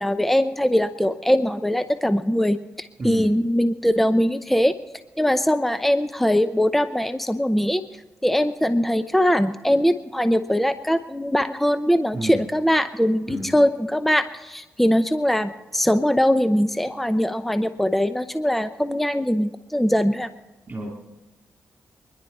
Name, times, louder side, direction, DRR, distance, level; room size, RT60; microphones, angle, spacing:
voice 1, 0.0-4.7 5.2-7.8 8.2-20.3, equal, 5° left, 10 dB, 0.7 m, -21 dB
voice 2, 3.0-3.3 12.1-12.4 13.3-13.5 20.7-21.0, right 1 dB, 35° right, -1 dB, 2.9 m, -30 dB
24.5 x 11.0 x 4.2 m, 1.2 s
cardioid pair, 80°, 5 cm